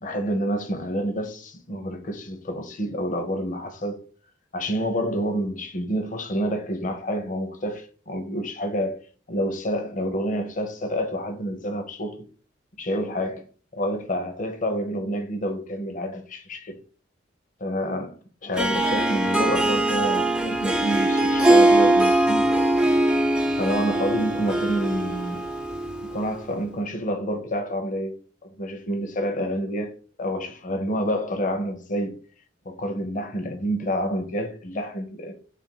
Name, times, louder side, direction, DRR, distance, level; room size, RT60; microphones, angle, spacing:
voice 1, 0.0-4.0 4.5-9.0 9.3-12.2 12.8-13.4 13.7-16.8 17.6-18.2 18.4-22.5 23.3-25.4 26.1-32.2 32.7-35.3, equal, 45° left, 0.7 m, -28 dB
Harp, 18.5-26.3, right 1 dB, 5° right, 0.4 m, -21 dB
3.3 x 2.5 x 4.4 m
head